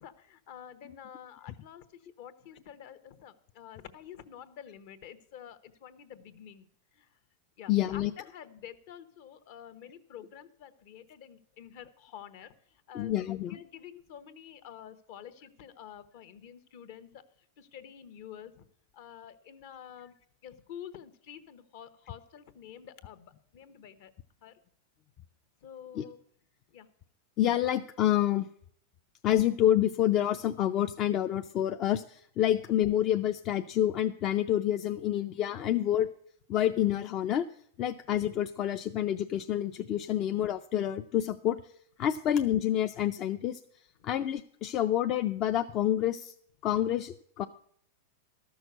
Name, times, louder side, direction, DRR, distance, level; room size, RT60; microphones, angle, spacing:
voice 1, 0.0-7.2 7.6-13.1 13.5-17.2 17.6-18.6 18.9-20.2 20.4-24.1 24.4-24.6 25.6-26.2 26.7-26.9 44.0-44.1, left 9 dB, 55° left, 12 dB, 0.9 m, -49 dB
voice 2, 7.7-8.1 12.9-13.6 26.0-26.1 27.4-28.5 29.2-36.1 36.5-37.4 37.8-41.6 42.0-43.6 44.0-46.3 46.6-47.4, left 11 dB, 30° left, 8 dB, 0.4 m, -28 dB
13.0 x 6.3 x 7.9 m, 0.67 s
supercardioid pair, 155°, 0 cm